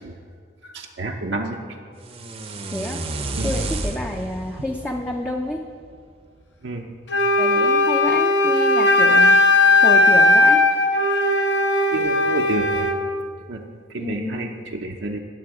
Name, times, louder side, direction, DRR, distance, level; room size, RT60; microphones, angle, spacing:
voice 1, 0.6-1.6 3.4-3.5 6.6-6.9 11.9-12.9 13.5-13.6 13.9-15.2, right 2 dB, 70° right, 1 dB, 0.7 m, -29 dB
sound 1, 2.0-6.1, right 2 dB, 30° right, 0.7 m, -31 dB
voice 2, 2.7-3.0 3.4-5.7 7.4-9.5 9.8-10.6 14.0-14.6, left 1 dB, 10° left, 1 dB, 0.5 m, -29 dB
Wind instrument woodwind instrument, 7.1-13.0, left 2 dB, 70° left, 1.1 m, -17 dB
18.0 x 7.1 x 4.9 m, 2.1 s
head